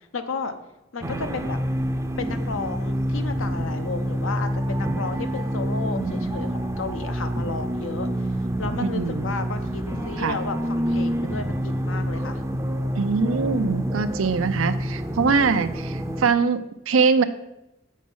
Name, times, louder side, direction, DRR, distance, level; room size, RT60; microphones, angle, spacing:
voice 1, 0.1-0.5 0.9-1.6 2.2-8.3 8.6-12.4, left 4 dB, 75° left, 8 dB, 0.8 m, -33 dB
sound 1, 1.0-16.3, equal, 15° right, 0.5 m, -27 dB
voice 2, 8.8-9.3 10.2-10.4 12.9-17.2, right 5 dB, 90° right, 11 dB, 0.6 m, -22 dB
7.4 x 5.1 x 5.5 m, 0.90 s
head